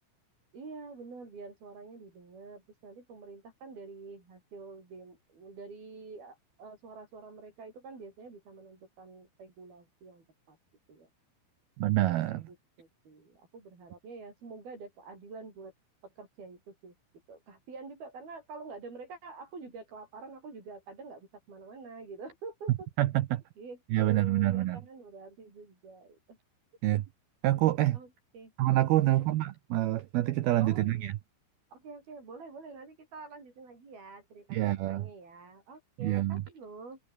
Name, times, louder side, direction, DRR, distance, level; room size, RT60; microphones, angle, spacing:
voice 1, 0.5-10.6 10.9-11.1 12.5-15.7 16.0-16.9 17.3-22.9 23.6-26.4 27.9-28.5 29.2-29.3 30.6-31.1 31.7-34.6 34.9-37.0, right 4 dB, 50° right, 8.8 m, -47 dB
voice 2, 11.8-12.5 23.0-23.4 23.9-24.8 26.8-27.0 27.4-28.0 28.6-31.1 34.5-35.0 36.0-36.4, right 15 dB, 90° right, 2.1 m, -27 dB
omnidirectional pair, 5.8 m